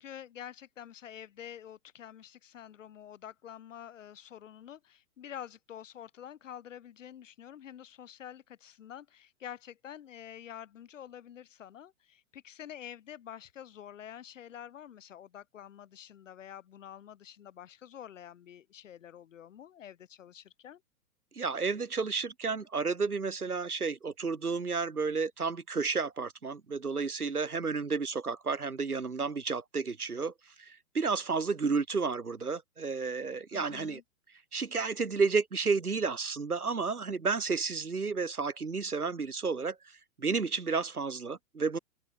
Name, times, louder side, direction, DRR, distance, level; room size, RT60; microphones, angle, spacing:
voice 1, 0.0-20.8 33.5-34.0, left 10 dB, 55° left, 7.5 m, -48 dB
voice 2, 21.3-30.3 30.6-34.0 34.5-39.8 40.2-41.8, right 4 dB, 90° right, 1.4 m, -31 dB
figure-of-eight pair, 115°, 44 cm